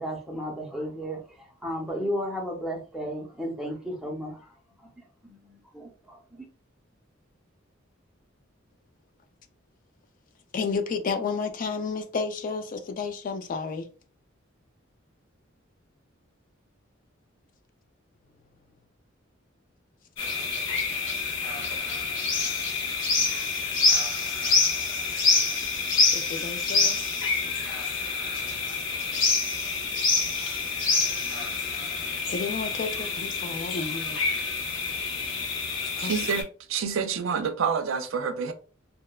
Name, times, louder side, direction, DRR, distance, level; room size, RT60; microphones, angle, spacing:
voice 1, 0.0-4.5 5.0-6.5, equal, 5° right, 0.6 m, -34 dB
voice 2, 10.5-13.9 26.1-27.0 31.1-31.4 31.6-34.2 36.0-36.2, left 4 dB, 45° left, 0.3 m, -32 dB
sound 1, 20.2-36.4, left 4 dB, 70° left, 0.8 m, -27 dB
voice 3, 36.0-36.4 36.7-38.5, right 6 dB, 75° right, 0.4 m, -27 dB
2.8 x 2.1 x 2.2 m
head